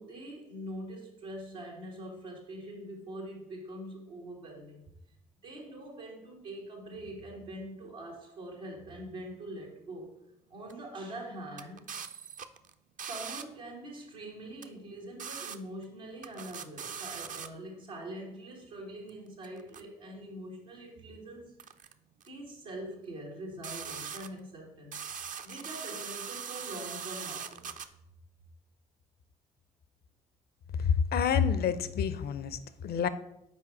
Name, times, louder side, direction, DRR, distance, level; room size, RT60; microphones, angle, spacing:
voice 1, 0.0-4.8 5.4-10.1 10.5-11.8 13.0-21.5 22.2-25.0 25.4-27.8, right 1 dB, 90° right, -3 dB, 1.8 m, -43 dB
sound 1, 10.7-10.8 11.6-13.4 14.6-14.7 15.2-15.6 15.8-15.9 16.2-17.5 19.1-19.2 19.4-19.8 21.6-21.9 22.2-22.3 23.6-24.4 24.9-27.9, right 7 dB, 45° right, 0.5 m, -40 dB
voice 2, 30.8-33.1, left 7 dB, 55° left, 14 dB, 0.5 m, -28 dB
6.1 x 4.7 x 4.7 m, 0.82 s
hypercardioid pair, 45°, 19 cm